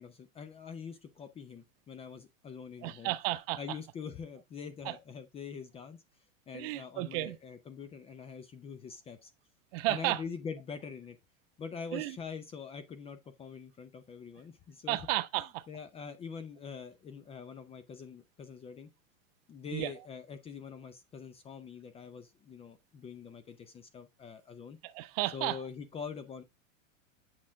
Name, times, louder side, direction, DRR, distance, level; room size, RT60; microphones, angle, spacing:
voice 1, 0.0-3.1 3.6-6.0 6.5-9.3 9.9-11.2 11.6-15.0 15.4-18.9 19.5-24.8 25.3-26.4, left 6 dB, 15° left, 0.4 m, -44 dB
voice 2, 2.8-3.6 4.8-4.9 6.5-7.4 9.7-10.2 11.9-12.2 14.9-15.7 19.7-19.9 24.8-25.6, right 17 dB, 45° right, 0.6 m, -33 dB
7.8 x 4.1 x 3.4 m
hypercardioid pair, 120°, 40 cm